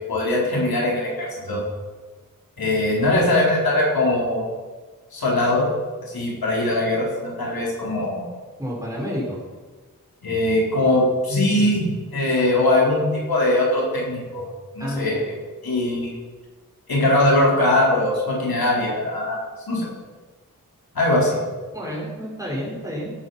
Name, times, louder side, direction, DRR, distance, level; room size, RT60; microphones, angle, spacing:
voice 1, 0.1-1.6 2.6-4.5 5.1-5.7 6.0-8.3 10.2-14.5 14.7-15.2 15.6-16.1 16.9-19.4 19.7-19.9 20.9-21.4, left 1 dB, 85° left, -4 dB, 4.5 m, -21 dB
voice 2, 8.6-9.4 14.8-15.2 21.7-23.1, equal, 10° right, -4 dB, 5.3 m, -29 dB
17.0 x 9.1 x 5.9 m, 1.4 s
wide cardioid pair, 90°, 35 cm